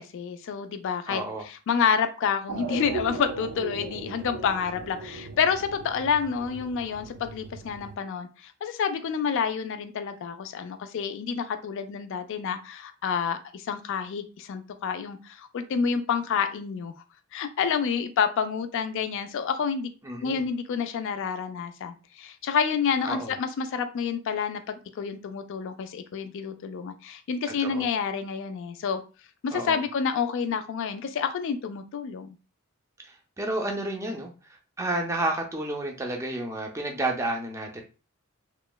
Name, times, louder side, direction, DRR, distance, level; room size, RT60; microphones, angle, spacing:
voice 1, 0.0-16.9 17.3-19.9 20.2-29.0 29.4-32.4, left 6 dB, 60° left, 9 dB, 0.3 m, -29 dB
voice 2, 1.1-1.4 20.0-20.4 23.0-23.4 27.4-27.9 29.5-29.8 33.0-37.8, right 1 dB, 15° right, 2 dB, 0.4 m, -31 dB
sound 1, 2.5-7.9, right 4 dB, 80° right, 0.4 m, -38 dB
2.9 x 2.0 x 2.2 m, 0.34 s
head